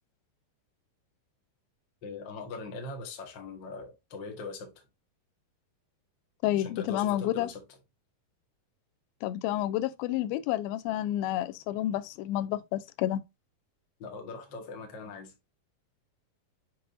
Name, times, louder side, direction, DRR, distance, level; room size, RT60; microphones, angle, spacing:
voice 1, 2.0-4.7 6.6-7.6 14.0-15.3, left 3 dB, 50° left, 1.5 m, -41 dB
voice 2, 6.4-7.5 9.2-13.2, left 13 dB, 90° left, 2.4 m, -30 dB
7.1 x 5.1 x 2.6 m
omnidirectional pair, 4.2 m